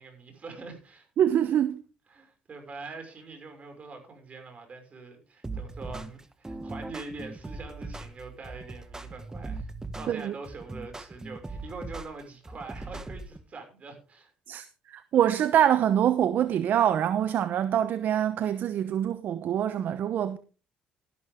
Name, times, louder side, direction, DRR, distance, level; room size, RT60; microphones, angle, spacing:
voice 1, 0.0-1.1 2.1-14.3, right 4 dB, 40° right, 5.9 m, -44 dB
voice 2, 1.2-1.8 10.1-10.3 14.5-20.4, right 10 dB, 60° right, 0.9 m, -25 dB
sound 1, 5.4-13.4, right 2 dB, 15° right, 1.3 m, -40 dB
12.5 x 12.0 x 3.6 m
supercardioid pair, 65°, 4 cm